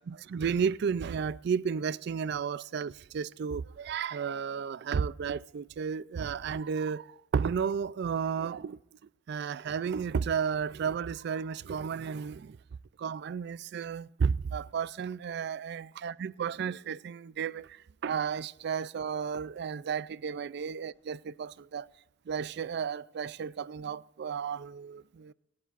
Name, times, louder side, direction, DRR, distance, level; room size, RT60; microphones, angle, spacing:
voice 1, 0.1-7.0 7.3-8.8 9.3-12.6 13.0-17.7 18.0-21.9 22.3-25.3, right 6 dB, 60° right, 0.4 m, -33 dB
18.5 x 17.5 x 2.5 m
head